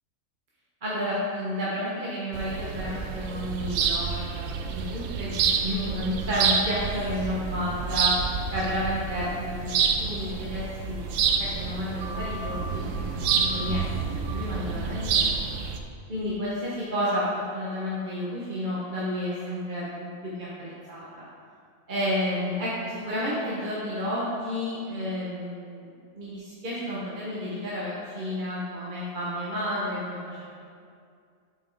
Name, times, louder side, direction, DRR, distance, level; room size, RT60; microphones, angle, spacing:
voice 1, 0.8-8.1 8.5-9.7 10.0-11.0 11.3-15.2 15.5-15.6 16.1-21.2 21.9-30.4, equal, 40° right, -7 dB, 1.0 m, -31 dB
sound 1, 2.3-15.8, right 6 dB, 70° right, 0.9 m, -28 dB
7.6 x 5.2 x 3.9 m, 2.3 s
omnidirectional pair, 1.4 m